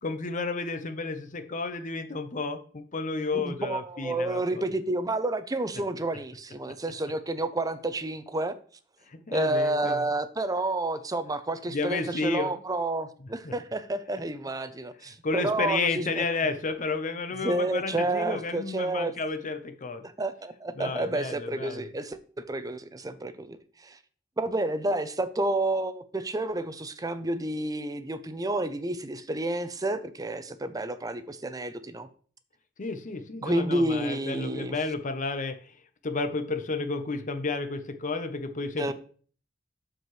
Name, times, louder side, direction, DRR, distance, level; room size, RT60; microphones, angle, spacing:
voice 1, 0.0-4.6 9.3-10.1 11.7-12.6 13.4-13.5 15.2-20.0 20.8-21.8 32.8-35.7 36.0-38.9, left 3 dB, 40° left, 0.7 m, -31 dB
voice 2, 3.3-8.5 9.3-16.2 17.4-19.1 20.0-22.2 22.5-24.0 24.4-32.1 33.4-34.7 38.8-38.9, right 2 dB, 20° right, 0.6 m, -30 dB
12.0 x 4.6 x 3.2 m
head